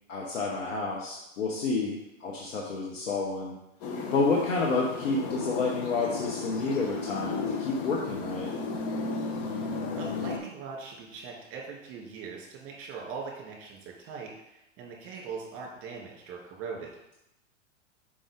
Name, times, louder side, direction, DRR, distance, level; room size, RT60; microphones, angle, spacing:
voice 1, 0.1-3.6 4.1-8.5, left 3 dB, 75° left, -3 dB, 1.2 m, -29 dB
sound 1, 3.8-10.4, left 4 dB, 40° left, 1.1 m, -34 dB
voice 2, 9.6-16.9, right 5 dB, 35° right, -1 dB, 2.2 m, -41 dB
5.5 x 5.2 x 3.6 m, 0.87 s
hypercardioid pair, 105°, 38 cm